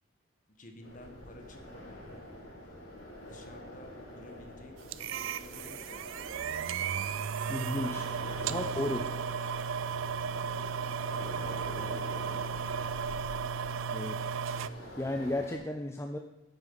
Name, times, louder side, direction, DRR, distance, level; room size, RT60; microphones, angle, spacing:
voice 1, 0.6-2.0 3.2-6.0 8.4-8.6 9.4-9.5 10.3-10.7 11.1-12.6, left 1 dB, 40° left, 5 dB, 1.4 m, -52 dB
sound 1, 0.8-15.6, left 1 dB, 70° left, 3.8 m, -46 dB
sound 2, 4.9-14.7, right 6 dB, 70° right, 0.4 m, -35 dB
voice 2, 7.5-8.1 8.5-9.0 13.9-14.2 14.5-14.6 15.0-16.2, left 1 dB, 15° left, 4 dB, 0.4 m, -34 dB
10.0 x 8.3 x 5.3 m, 0.98 s
head